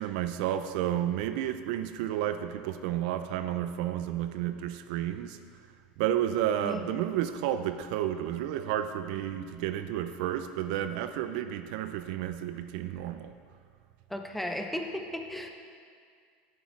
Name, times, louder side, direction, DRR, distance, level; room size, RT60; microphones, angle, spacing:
voice 1, 0.0-5.4 6.0-13.3, right 11 dB, 70° right, 10 dB, 0.4 m, -31 dB
voice 2, 14.1-15.5, left 1 dB, 5° left, 3 dB, 0.6 m, -35 dB
8.1 x 7.0 x 3.2 m, 2.1 s
supercardioid pair, 110°, 5 cm